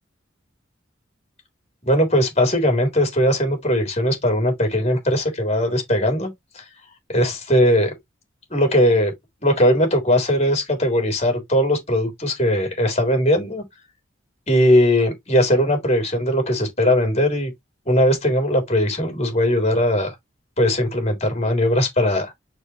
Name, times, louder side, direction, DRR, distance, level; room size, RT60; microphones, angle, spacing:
voice 1, 1.8-6.3 6.5-6.6 7.1-7.9 8.5-9.1 9.4-13.6 14.5-17.5 17.9-20.1 20.6-22.3, equal, 35° left, 3.7 m, -19 dB
6.4 x 4.9 x 3.3 m
head